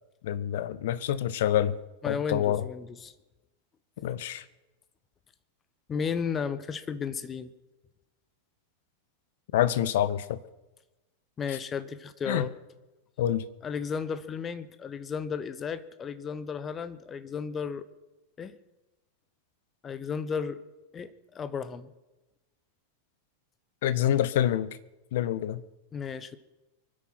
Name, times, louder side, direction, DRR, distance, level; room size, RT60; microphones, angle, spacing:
voice 1, 0.2-1.7 2.1-2.6 4.0-4.4 9.5-10.4 12.3-12.5 13.2-13.5 23.8-24.7 25.1-25.6, left 11 dB, 55° left, 15 dB, 0.9 m, -26 dB
voice 2, 2.0-3.1 5.9-7.5 11.4-12.5 13.6-17.8 18.4-18.6 19.8-20.6 20.9-21.9 25.9-26.4, left 6 dB, 20° left, 13 dB, 1.0 m, -34 dB
24.0 x 9.6 x 5.9 m, 1.1 s
figure-of-eight pair, 90°, 0 cm